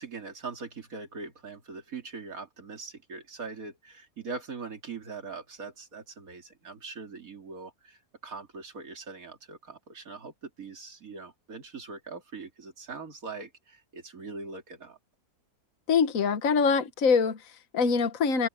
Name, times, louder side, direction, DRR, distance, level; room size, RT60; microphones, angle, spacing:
voice 1, 0.0-15.0, right 4 dB, 65° right, 3.1 m, -42 dB
voice 2, 15.9-18.5, left 5 dB, 65° left, 1.6 m, -24 dB
omnidirectional pair, 1.6 m